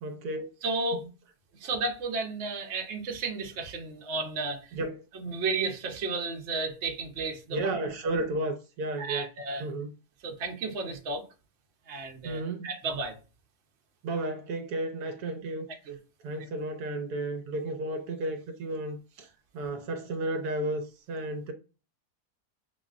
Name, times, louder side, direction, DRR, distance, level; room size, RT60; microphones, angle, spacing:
voice 1, 0.0-0.5 0.9-1.0 4.7-5.0 7.5-9.3 9.6-9.9 12.2-12.7 14.0-15.7 16.2-19.3 19.5-21.5, right 2 dB, 75° right, 1.1 m, -33 dB
voice 2, 0.6-1.0 1.6-4.7 5.1-7.7 9.0-9.7 10.2-11.3 11.9-13.2 15.9-16.0, right 3 dB, 55° right, 0.9 m, -33 dB
6.0 x 2.1 x 2.4 m
omnidirectional pair, 1.7 m